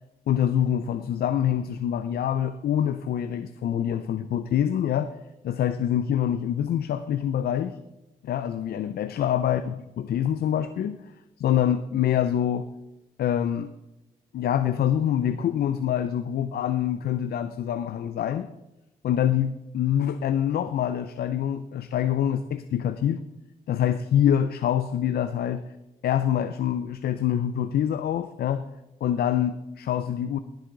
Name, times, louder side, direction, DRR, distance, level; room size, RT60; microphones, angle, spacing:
voice 1, 0.3-5.1 5.4-7.8 8.2-11.0 11.4-12.7 13.2-13.7 14.3-18.5 19.0-23.2 23.7-25.7 26.0-28.7 29.0-30.4, left 10 dB, 75° left, 11 dB, 0.6 m, -25 dB
17.0 x 8.0 x 3.9 m, 0.94 s
supercardioid pair, 55°, 16 cm